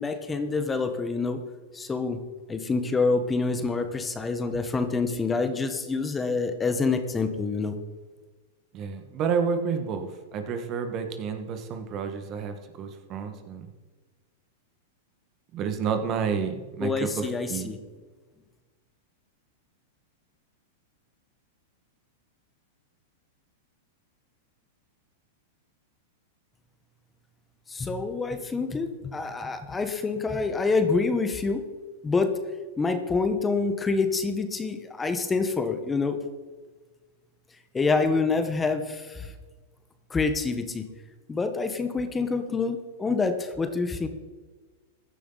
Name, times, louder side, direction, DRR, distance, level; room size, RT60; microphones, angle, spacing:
voice 1, 0.0-1.4 1.7-2.2 2.5-7.7 16.8-17.8 27.7-31.6 32.0-32.3 32.8-36.2 37.7-39.3 40.1-40.8 41.3-44.1, left 4 dB, 15° left, 8 dB, 1.3 m, -27 dB
voice 2, 8.7-13.7 15.5-17.7, right 6 dB, 40° right, 7 dB, 1.7 m, -30 dB
15.5 x 10.5 x 4.1 m, 1.3 s
hypercardioid pair, 110°, 0 cm